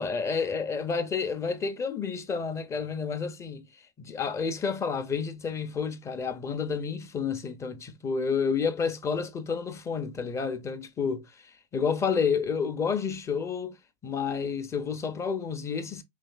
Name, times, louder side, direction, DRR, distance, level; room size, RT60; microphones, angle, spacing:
voice 1, 0.0-3.7 4.0-11.3 11.7-13.8 14.0-16.0, left 5 dB, 20° left, 0.8 m, -30 dB
5.0 x 3.2 x 2.3 m
hypercardioid pair, 120°, 13 cm